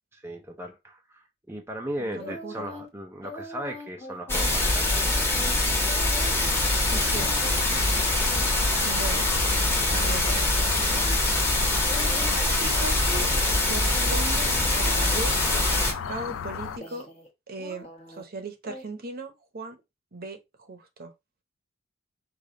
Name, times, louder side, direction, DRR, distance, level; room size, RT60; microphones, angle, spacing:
voice 1, 0.2-4.9, right 1 dB, 10° right, 0.6 m, -37 dB
voice 2, 2.0-2.6 6.9-7.3 8.8-9.3 9.9-10.3 12.6-13.3 13.7-17.1 17.5-19.8 20.1-21.1, right 3 dB, 50° right, 0.9 m, -37 dB
sound 1, 2.2-2.9 3.2-11.2 11.6-12.9 13.1-13.6 13.9-17.3 17.6-18.2 18.6-18.8, left 2 dB, 30° left, 1.1 m, -42 dB
sound 2, 4.3-15.9, left 2 dB, 10° left, 1.3 m, -24 dB
Twilight Ambience, 6.0-16.8, left 7 dB, 85° left, 0.4 m, -36 dB
5.1 x 2.5 x 3.7 m
head